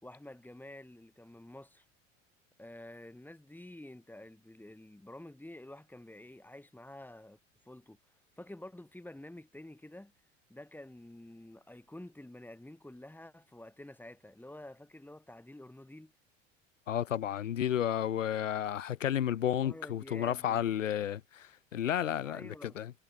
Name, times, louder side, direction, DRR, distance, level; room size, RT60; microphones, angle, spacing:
voice 1, 0.0-1.8 2.6-7.4 7.6-8.0 8.4-10.1 10.5-16.1 19.6-20.8 22.2-22.8, left 1 dB, 5° left, 6.7 m, -49 dB
voice 2, 16.9-22.9, left 10 dB, 80° left, 1.0 m, -32 dB
figure-of-eight pair, 75°, 38 cm